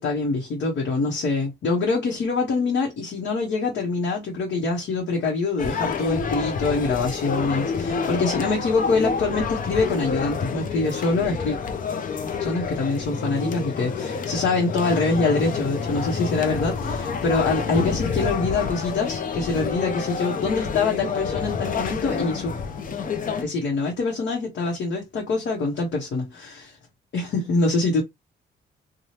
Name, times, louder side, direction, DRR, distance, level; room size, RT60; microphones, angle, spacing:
voice 1, 0.0-11.6 12.4-22.5 23.4-26.8 27.1-28.0, left 3 dB, 65° left, 1.0 m, -25 dB
sound 1, 5.6-23.4, left 5 dB, 45° left, 0.6 m, -28 dB
2.8 x 2.3 x 3.1 m
cardioid pair, 90°, 20 cm